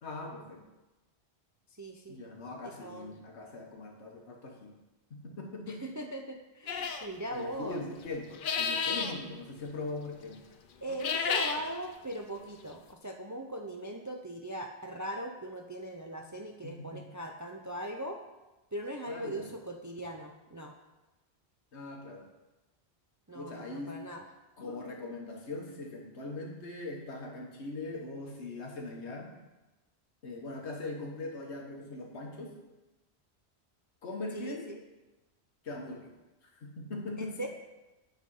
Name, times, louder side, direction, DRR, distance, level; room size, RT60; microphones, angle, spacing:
voice 1, 0.0-0.6 2.1-4.7 5.1-5.8 7.3-8.3 8.5-10.4 16.6-17.0 19.1-19.5 21.7-22.3 23.3-24.0 24.6-29.3 30.2-32.5 34.0-34.6 35.6-36.1 36.4-37.3, left 2 dB, 85° left, 1 dB, 1.6 m, -41 dB
voice 2, 1.8-2.2 2.6-3.1 5.7-7.8 10.8-18.2 18.7-20.7 23.3-24.2 34.3-34.8 37.2-37.5, right 1 dB, 30° right, 3 dB, 0.3 m, -40 dB
sound 1, 6.7-7.1 8.3-9.2 10.9-11.6, left 6 dB, 55° left, 0.7 m, -31 dB
9.3 x 4.1 x 5.5 m, 1.1 s
omnidirectional pair, 1.1 m